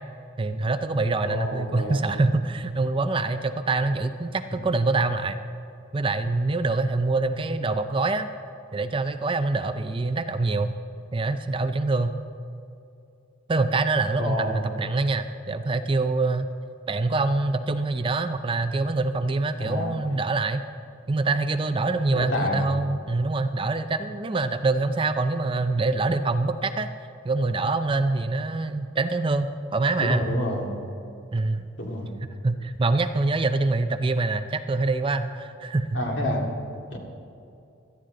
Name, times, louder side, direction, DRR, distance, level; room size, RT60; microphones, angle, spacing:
voice 1, 0.4-5.4 5.9-8.3 8.7-10.8 11.1-12.1 13.5-16.5 16.9-20.6 21.1-26.9 27.2-30.3 31.3-31.6 32.4-35.9, right 3 dB, 25° right, 9 dB, 0.4 m, -25 dB
voice 2, 1.2-2.1 14.2-14.6 19.5-20.0 22.1-22.6 30.0-30.7 31.8-32.1 35.9-36.4 36.9-37.0, left 1 dB, 60° left, 0 dB, 2.3 m, -28 dB
17.0 x 13.0 x 3.8 m, 2.6 s
head